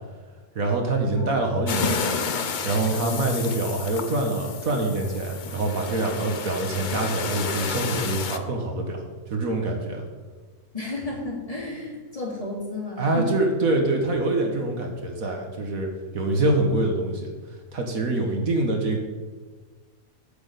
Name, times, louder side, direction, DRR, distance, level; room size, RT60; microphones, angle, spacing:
voice 1, 0.5-2.2 2.6-10.0 13.0-15.9 16.1-17.3 17.7-19.0, right 2 dB, 65° right, 2 dB, 1.7 m, -25 dB
sound 1, 1.7-8.4, left 5 dB, 55° left, 0.5 m, -31 dB
voice 2, 10.7-13.3, left 2 dB, 20° left, -4 dB, 2.8 m, -32 dB
8.8 x 6.1 x 8.1 m, 1.4 s
omnidirectional pair, 1.6 m